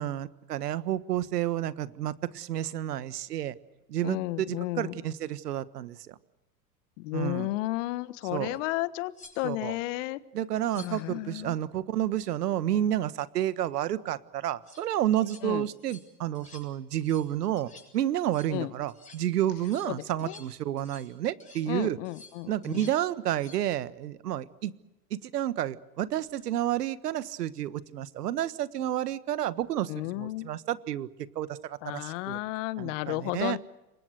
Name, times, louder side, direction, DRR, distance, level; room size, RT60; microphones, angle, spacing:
voice 1, 0.0-3.5 3.9-6.2 7.1-7.5 8.3-8.6 9.4-9.8 10.3-22.0 22.5-24.7 25.1-31.1 31.3-32.4 32.8-33.6, right 12 dB, 75° right, 16 dB, 1.5 m, -30 dB
voice 2, 4.0-5.0 7.0-10.2 10.8-11.6 15.4-15.6 18.5-18.7 19.8-20.4 21.7-22.9 29.9-30.5 31.8-33.6, left 19 dB, 50° left, 16 dB, 1.4 m, -33 dB
sound 1, 8.5-8.6 9.1-9.7 10.5-11.1 14.4-14.8 15.2-15.4 15.7-16.1 16.3-16.7 16.9-17.3 17.6-17.9 18.2-18.6 18.9-19.2 19.6-21.1 21.4-21.7 22.0-23.0 23.3-23.6 26.2-26.4, left 3 dB, 15° left, 7.8 m, -52 dB
28.0 x 24.0 x 6.6 m, 1.0 s
hypercardioid pair, 115°, 48 cm